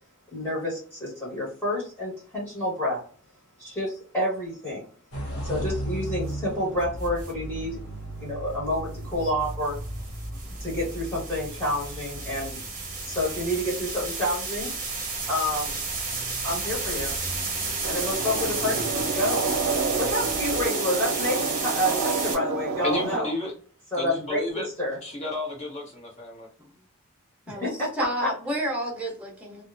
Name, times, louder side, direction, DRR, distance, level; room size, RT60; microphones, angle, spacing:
voice 1, 0.3-3.0 3.6-4.9 5.3-7.8 8.2-9.7 10.6-12.6 13.0-14.7 15.3-15.8 16.4-17.1 17.9-19.5 20.0-23.3 23.9-25.0 27.5-27.9 28.2-28.3, left 1 dB, 10° left, -7 dB, 1.2 m, -29 dB
sound 1, 5.1-20.7, right 1 dB, 70° left, 0.8 m, -38 dB
sound 2, 7.0-7.3 9.5-22.3, right 4 dB, 35° right, 0.7 m, -32 dB
sound 3, 17.8-23.2, right 5 dB, 70° right, 0.3 m, -29 dB
voice 2, 22.8-23.5 23.9-24.7 25.0-26.5, left 1 dB, 30° left, -3 dB, 1.1 m, -32 dB
voice 3, 28.0-29.6, equal, 5° right, -1 dB, 0.8 m, -30 dB
2.8 x 2.2 x 2.5 m, 0.43 s
head